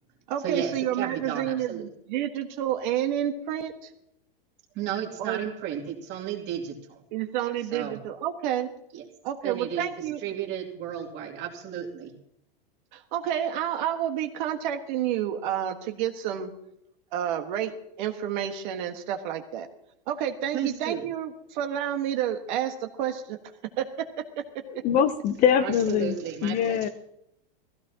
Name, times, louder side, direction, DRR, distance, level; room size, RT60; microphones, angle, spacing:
voice 1, 0.3-3.9 5.2-5.4 7.1-8.7 9.2-10.2 12.9-16.5 17.1-17.7 18.0-19.7 20.1-23.4 23.8-24.1 24.4-24.5, right 10 dB, 55° right, 5 dB, 1.5 m, -29 dB
voice 2, 1.0-1.9 4.8-7.0 7.7-8.0 8.9-9.0 9.4-9.8 10.2-12.1 20.5-21.0 25.6-26.9, right 9 dB, 35° right, 1 dB, 2.7 m, -33 dB
voice 3, 24.7-26.9, left 8 dB, 30° left, 10 dB, 0.7 m, -24 dB
18.5 x 15.5 x 2.9 m, 0.79 s
supercardioid pair, 150°, 29 cm